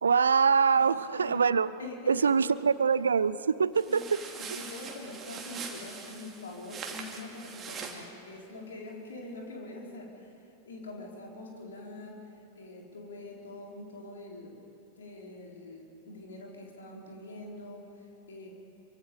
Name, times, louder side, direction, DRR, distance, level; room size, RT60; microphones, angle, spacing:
voice 1, 0.0-1.7 2.1-4.2, right 6 dB, 70° right, 18 dB, 0.5 m, -24 dB
voice 2, 1.8-2.6 3.9-4.0 4.4-10.3 10.7-12.2 12.5-14.6 15.0-17.9 18.3-18.5, left 2 dB, 65° left, -1 dB, 4.4 m, -44 dB
sound 1, 3.7-8.1, right 5 dB, 25° right, 2.6 m, -42 dB
27.0 x 24.0 x 5.1 m, 2.9 s
figure-of-eight pair, 90°, 0 cm